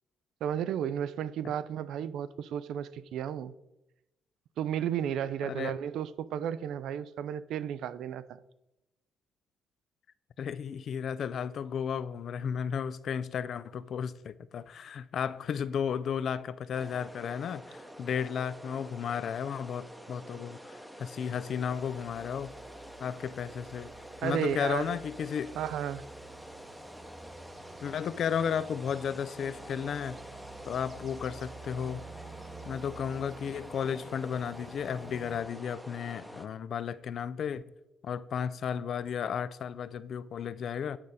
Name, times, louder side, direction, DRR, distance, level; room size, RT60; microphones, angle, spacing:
voice 1, 0.4-3.5 4.6-8.4 24.2-25.0 25.6-26.0, right 9 dB, 80° right, 0.3 m, -33 dB
voice 2, 10.4-22.5 23.0-23.9 24.2-25.6 27.8-30.2 30.7-32.0 32.7-37.6 38.0-41.0, left 7 dB, 60° left, 0.3 m, -34 dB
sound 1, 16.7-36.5, equal, 5° right, 0.7 m, -47 dB
sound 2, 21.4-35.4, right 4 dB, 50° right, 1.4 m, -52 dB
8.7 x 4.9 x 4.1 m
cardioid pair, 90°, 0 cm